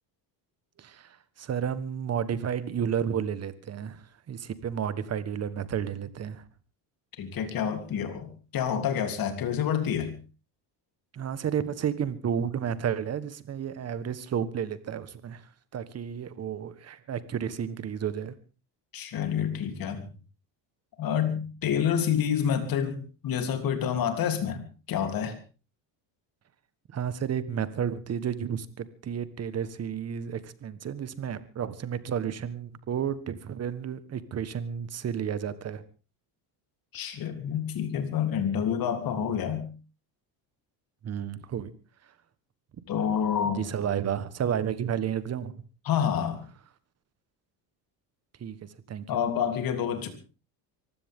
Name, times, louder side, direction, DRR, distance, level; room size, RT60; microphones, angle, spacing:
voice 1, 0.8-6.4 11.1-18.3 26.9-35.8 41.0-41.7 42.0-42.1 43.4-45.6 48.4-49.1, right 8 dB, 35° right, 14 dB, 1.4 m, -32 dB
voice 2, 7.2-10.1 18.9-20.1 21.0-23.0 23.2-24.6 24.9-25.3 36.9-39.7 42.9-43.6 45.8-46.4 49.1-50.1, left 8 dB, 50° left, 6 dB, 3.4 m, -28 dB
24.0 x 15.5 x 3.7 m, 0.34 s
cardioid pair, 140°, 44 cm